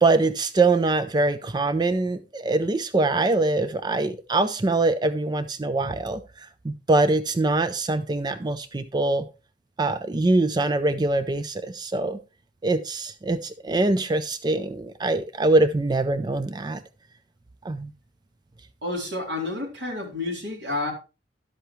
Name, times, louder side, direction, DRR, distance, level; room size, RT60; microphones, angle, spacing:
voice 1, 0.0-6.2 6.6-9.3 9.8-12.2 12.6-16.8 17.6-17.9, right 2 dB, 25° right, 12 dB, 0.4 m, -23 dB
voice 2, 18.8-20.9, left 2 dB, 85° right, 0 dB, 3.5 m, -30 dB
11.5 x 8.0 x 3.1 m, 0.30 s
head